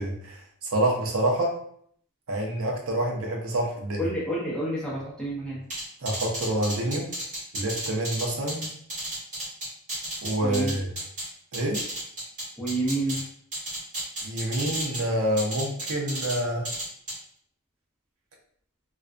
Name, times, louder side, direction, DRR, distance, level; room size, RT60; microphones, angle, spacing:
voice 1, 0.0-1.5 2.3-4.0 6.0-7.1 7.5-8.7 10.2-10.9 11.5-11.8 14.2-16.7, right 1 dB, 65° right, 0 dB, 0.6 m, -27 dB
voice 2, 4.0-5.6 10.4-10.8 12.6-13.2, right 1 dB, 5° left, -8 dB, 0.6 m, -29 dB
sound 1, 5.7-11.3 11.5-13.2 13.5-15.0 15.4-16.4 16.6-17.1, right 1 dB, 35° right, 1.1 m, -33 dB
2.4 x 2.1 x 2.4 m, 0.64 s
head